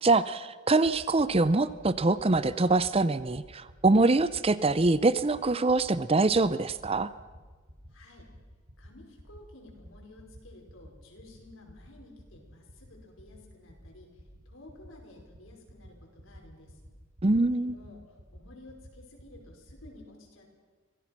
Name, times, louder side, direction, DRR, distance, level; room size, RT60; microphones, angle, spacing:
voice 1, 0.0-7.1 17.2-17.7, right 3 dB, 25° right, 15 dB, 0.6 m, -24 dB
sound 1, 0.8-0.9 1.2-1.4 1.7-1.9 2.2-2.4 2.7-2.9 3.2-3.4 3.7-3.9 4.2-4.4 4.7-4.9 5.2-5.4 5.7-5.9 6.2-6.4 6.7-6.9 7.2-7.4 7.7-7.9 8.2-8.4 8.7-8.9 9.2-9.4 9.7-9.9 10.2-10.4 10.7-10.9 11.2-11.4 11.7-11.9 12.2-12.4 12.7-12.9 13.2-13.4 13.7-13.9 14.2-14.4 14.7-14.9 15.2-15.4 15.7-15.9 16.2-16.4 16.7-16.9 17.2-17.4 17.7-17.9 18.2-18.4 18.7-18.9 19.2-19.4 19.7-19.9, equal, 70° right, 5.6 m, -50 dB
voice 2, 7.9-8.3 8.8-16.8 17.5-20.5, left 2 dB, 75° left, 0 dB, 5.2 m, -53 dB
25.5 x 17.5 x 6.0 m, 1.4 s
head